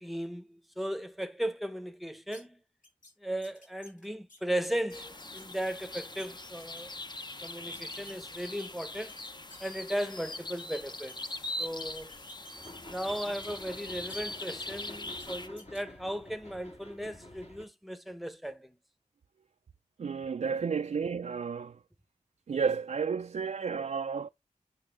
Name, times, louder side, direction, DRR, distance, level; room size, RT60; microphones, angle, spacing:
voice 1, 0.0-2.6 3.2-6.9 7.4-9.1 9.6-11.2 11.6-12.1 12.9-18.8, equal, ahead, 0.8 m, -36 dB
sound 1, 2.3-2.4 2.8-3.1 3.4-5.5 5.8-6.3 6.6-7.0 7.7-9.8 10.1-11.3 11.6-13.1 13.4-14.8 15.2-15.3 15.6-15.8, left 2 dB, 80° left, 3.7 m, -52 dB
sound 2, 4.9-15.5, left 2 dB, 35° left, 0.7 m, -42 dB
sound 3, 12.5-17.6, left 1 dB, 55° left, 1.8 m, -49 dB
voice 2, 20.0-21.8 22.5-24.3, right 6 dB, 60° right, 0.4 m, -32 dB
7.9 x 6.2 x 3.4 m
wide cardioid pair, 60°, 13 cm